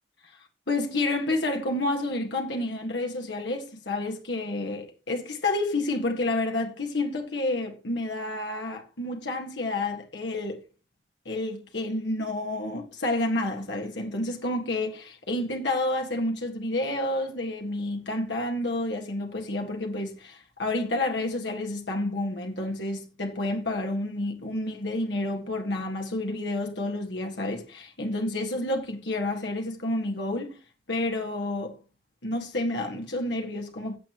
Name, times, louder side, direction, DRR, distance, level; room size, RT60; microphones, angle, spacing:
voice 1, 0.2-10.6 11.3-30.6 30.9-31.8 32.2-34.0, left 2 dB, 90° left, 1.8 m, -29 dB
15.5 x 7.7 x 3.0 m
head